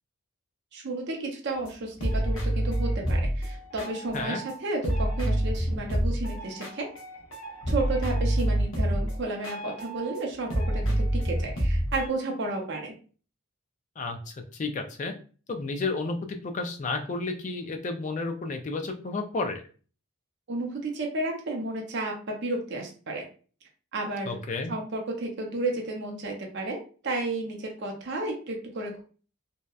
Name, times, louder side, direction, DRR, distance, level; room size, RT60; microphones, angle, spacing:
voice 1, 0.7-6.9 7.7-12.9 20.5-23.2 23.9-24.4 24.7-26.8 27.0-29.0, right 2 dB, 50° right, 1 dB, 0.5 m, -32 dB
sound 1, 1.7-1.8 2.0-4.6 4.8-10.2 10.5-12.1, right 1 dB, 65° left, 0.8 m, -28 dB
voice 2, 14.0-15.1 15.5-19.6 24.3-24.7, left 3 dB, 35° left, 5 dB, 0.3 m, -32 dB
2.7 x 2.0 x 2.3 m, 0.39 s
head